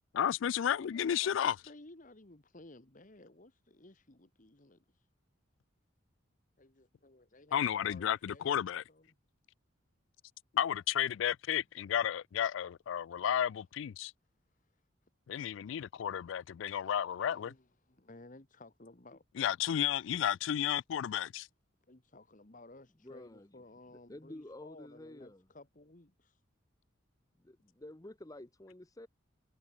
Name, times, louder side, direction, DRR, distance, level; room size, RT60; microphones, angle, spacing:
voice 1, 0.1-1.5 7.5-8.8 10.5-14.1 15.3-17.5 19.4-21.5, left 9 dB, 70° left, 0.3 m, -32 dB
voice 2, 0.8-5.1 6.6-9.1 14.5-14.8 17.2-19.2 21.9-26.4, left 2 dB, 40° left, 1.6 m, -56 dB
voice 3, 23.0-23.5 23.9-25.5 27.4-29.1, left 1 dB, 20° left, 0.8 m, -50 dB
head